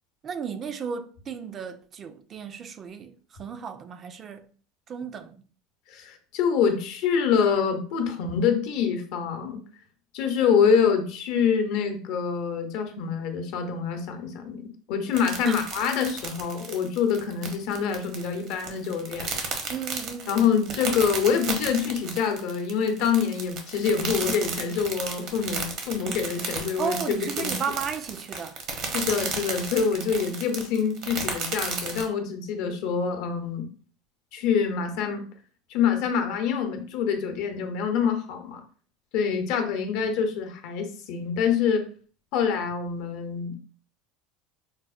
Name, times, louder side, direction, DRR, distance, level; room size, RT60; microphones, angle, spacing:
voice 1, 0.2-4.5 4.9-5.4 15.4-15.6 19.7-20.4 26.8-28.6, right 7 dB, 40° right, 0.4 m, -34 dB
voice 2, 5.9-9.6 10.1-19.3 20.3-27.5 28.9-33.7 34.3-35.2 35.7-38.6 39.1-41.9 42.3-43.6, left 6 dB, 70° left, 0.7 m, -26 dB
sound 1, 15.1-32.1, right 5 dB, 60° right, 0.8 m, -33 dB
4.5 x 2.0 x 2.4 m
supercardioid pair, 95°, 0 cm